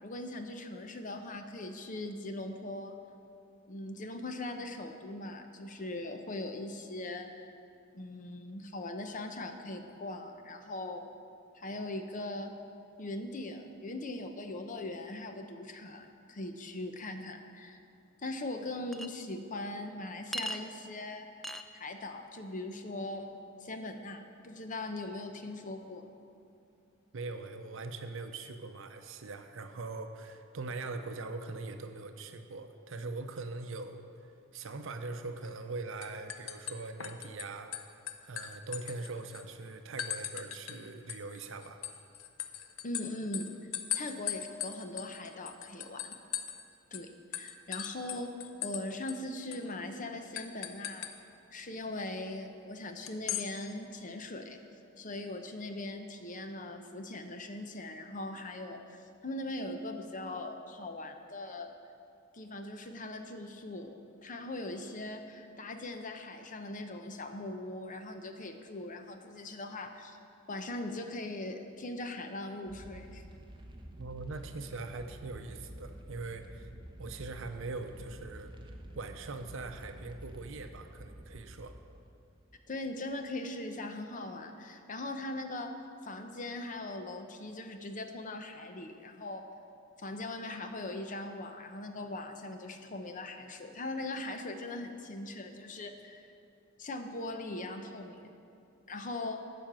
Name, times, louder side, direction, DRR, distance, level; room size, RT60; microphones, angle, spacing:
voice 1, 0.0-2.9 3.7-7.5 7.9-11.1 11.5-12.5 13.0-17.8 18.2-21.3 21.7-23.3 23.6-26.1 42.8-43.6 43.9-46.2 46.9-51.1 51.5-54.6 55.0-61.7 62.3-70.2 70.5-73.2 82.7-85.7 86.0-89.5 90.0-96.3 96.8-98.3 98.9-99.4, left 2 dB, 40° left, 6 dB, 0.8 m, -40 dB
Chink clink, 18.9-19.1 20.3-20.6 21.4-21.6, equal, ahead, 0.3 m, -37 dB
voice 2, 27.1-34.0 34.5-37.8 38.2-41.8 74.0-76.7 77.0-78.5 78.9-81.8, right 3 dB, 70° right, 8 dB, 0.7 m, -41 dB
sound 1, 35.4-35.7 36.0-37.4 37.7-39.4 40.0-40.8 41.1-46.6 46.9-47.0 47.3-48.8 49.1-49.2 49.5-49.7 50.3-51.1 53.1-53.5, left 11 dB, 85° left, 0.7 m, -39 dB
sound 2, 72.7-82.7, right 1 dB, 25° right, 0.8 m, -49 dB
12.0 x 5.2 x 7.5 m, 2.5 s
head